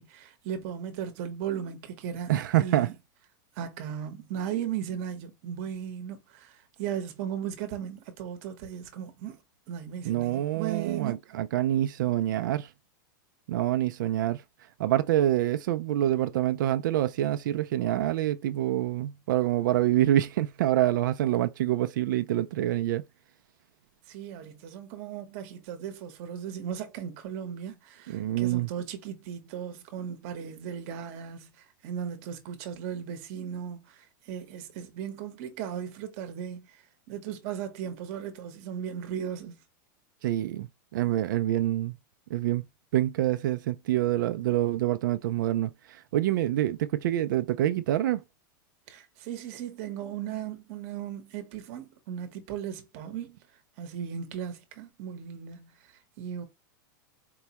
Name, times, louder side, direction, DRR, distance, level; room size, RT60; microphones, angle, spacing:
voice 1, 0.0-2.3 2.6-2.9 3.6-9.4 9.7-11.2 24.1-36.7 37.1-39.6 48.9-53.4 53.8-56.5, right 9 dB, 45° right, 0.9 m, -37 dB
voice 2, 2.3-2.9 10.0-12.7 13.5-14.4 14.8-23.0 28.1-28.7 40.2-41.9 42.3-42.6 42.9-48.2, right 13 dB, 70° right, 0.4 m, -26 dB
4.5 x 2.1 x 2.8 m
supercardioid pair, 165°, 11 cm